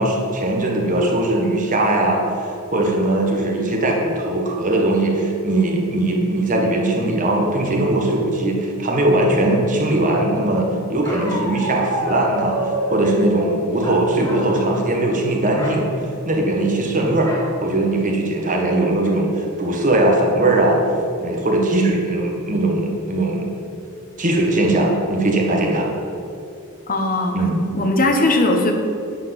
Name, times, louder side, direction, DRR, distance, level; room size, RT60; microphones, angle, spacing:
voice 1, 0.0-12.6 12.9-15.9 16.2-17.3 17.6-20.8 21.2-23.5 24.2-25.9 27.3-27.6, right 1 dB, 35° right, 0 dB, 1.6 m, -20 dB
Bark, 11.0-13.2 13.8-14.6 14.9-15.1 15.5-15.8 17.2-17.5 18.1-18.2 18.5-18.9, equal, 15° left, 2.3 m, -27 dB
voice 2, 26.9-27.4 27.7-28.7, left 2 dB, 40° left, 3 dB, 1.2 m, -18 dB
10.5 x 4.8 x 7.9 m, 2.6 s
head